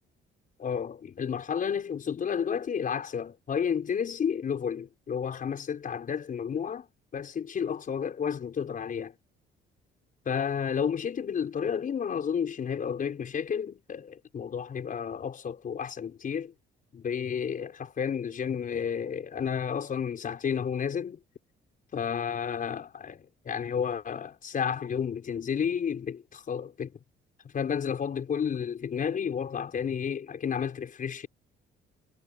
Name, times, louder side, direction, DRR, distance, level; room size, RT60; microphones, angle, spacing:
voice 1, 0.6-6.9 7.1-9.1 10.2-16.5 16.9-21.2 21.9-26.9 27.4-31.3, left 7 dB, 45° left, 6.0 m, -31 dB
cardioid pair, 130°, 20 cm